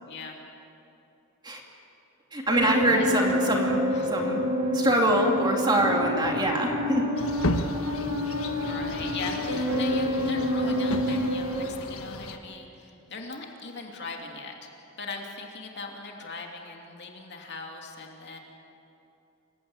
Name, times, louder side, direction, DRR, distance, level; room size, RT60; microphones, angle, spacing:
voice 1, 0.1-0.4 2.6-3.5 3.9-4.2 8.7-14.7 15.0-18.4, left 4 dB, 50° left, 1 dB, 2.8 m, -39 dB
voice 2, 2.3-3.8 4.0-4.4 4.7-7.1, right 1 dB, 20° right, 1 dB, 2.5 m, -24 dB
sound 1, 2.5-11.6, equal, 60° right, 4.9 m, -28 dB
sound 2, 7.2-12.4, left 2 dB, 70° left, 1.4 m, -34 dB
27.5 x 16.5 x 8.8 m, 2.8 s
head